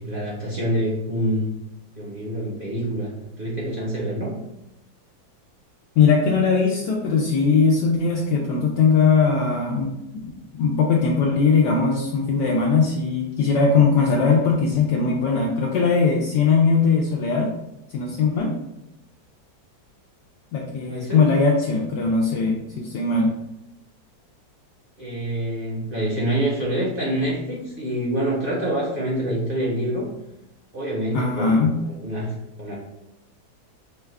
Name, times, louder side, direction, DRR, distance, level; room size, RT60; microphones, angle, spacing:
voice 1, 0.0-1.5 1.9-4.3 20.8-21.3 25.0-30.1 30.7-32.8, right 1 dB, 40° right, -6 dB, 0.8 m, -26 dB
voice 2, 6.0-9.9 10.3-17.5 17.9-18.5 20.5-23.3 31.1-31.8, left 5 dB, 75° left, -2 dB, 1.1 m, -20 dB
5.2 x 2.3 x 3.2 m, 0.89 s
omnidirectional pair, 2.1 m